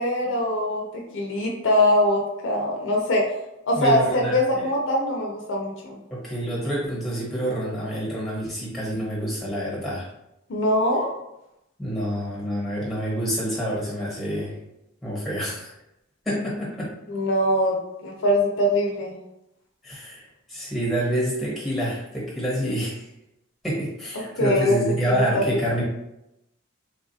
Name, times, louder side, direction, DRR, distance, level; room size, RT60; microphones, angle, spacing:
voice 1, 0.0-3.2 3.7-6.0 10.5-11.1 17.1-19.1 24.4-24.8 25.1-25.6, left 1 dB, 60° left, 0 dB, 0.6 m, -22 dB
voice 2, 3.7-4.7 6.1-10.1 11.8-14.5 15.0-15.7 16.2-16.9 19.8-23.1 23.6-25.8, equal, ahead, -6 dB, 1.2 m, -27 dB
3.6 x 2.3 x 2.7 m, 0.87 s
head